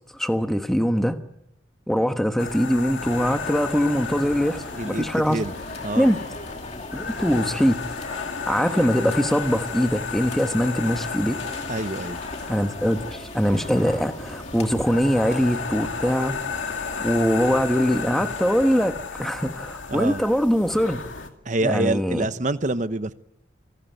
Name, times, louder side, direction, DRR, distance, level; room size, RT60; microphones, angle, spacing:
voice 1, 0.2-1.2 1.9-5.4 6.0-6.2 6.9-7.8 8.1-11.4 12.5-16.4 17.0-21.0 21.6-22.3, equal, ahead, 1.2 m, -22 dB
sound 1, 2.4-21.3, left 5 dB, 80° left, 2.4 m, -34 dB
sound 2, 3.0-18.9, left 2 dB, 35° left, 2.3 m, -39 dB
voice 2, 4.7-5.5 5.8-6.1 11.7-12.2 19.9-20.2 21.4-23.1, right 2 dB, 40° right, 0.9 m, -26 dB
28.0 x 18.5 x 9.2 m
head